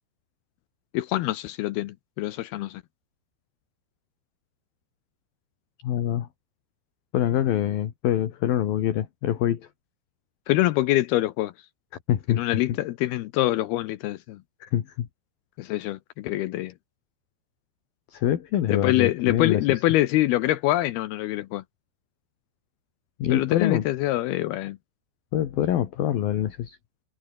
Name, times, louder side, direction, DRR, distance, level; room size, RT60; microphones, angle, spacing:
voice 1, 0.9-2.8 10.5-11.5 12.3-14.4 15.6-16.7 18.7-21.6 23.3-24.8, left 16 dB, 80° left, 2.3 m, -25 dB
voice 2, 5.8-6.3 7.1-9.7 12.1-12.5 14.6-15.1 18.1-19.8 23.2-23.8 25.3-26.8, left 11 dB, 60° left, 3.2 m, -25 dB
omnidirectional pair, 5.5 m